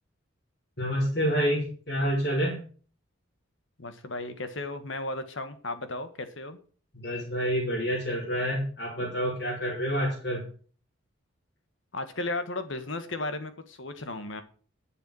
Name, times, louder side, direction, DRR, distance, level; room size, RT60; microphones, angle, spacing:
voice 1, 0.8-2.6 6.9-10.5, equal, 55° left, -5 dB, 3.9 m, -28 dB
voice 2, 3.8-6.6 11.9-14.4, left 2 dB, 70° left, 10 dB, 1.5 m, -35 dB
10.5 x 6.7 x 6.4 m, 0.42 s
head